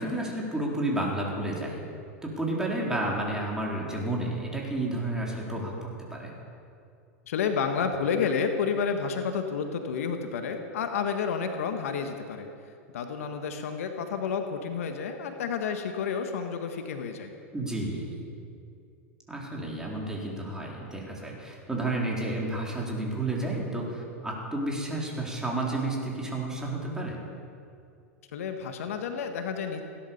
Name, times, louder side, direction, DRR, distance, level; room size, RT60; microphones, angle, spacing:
voice 1, 0.0-1.8 2.2-6.3 17.5-18.2 19.3-27.2, right 2 dB, 10° right, -2 dB, 4.2 m, -31 dB
voice 2, 7.3-12.5 12.9-17.3 28.3-29.8, left 6 dB, 75° left, 6 dB, 1.5 m, -30 dB
17.0 x 11.5 x 7.1 m, 2.5 s
hypercardioid pair, 100°, 8 cm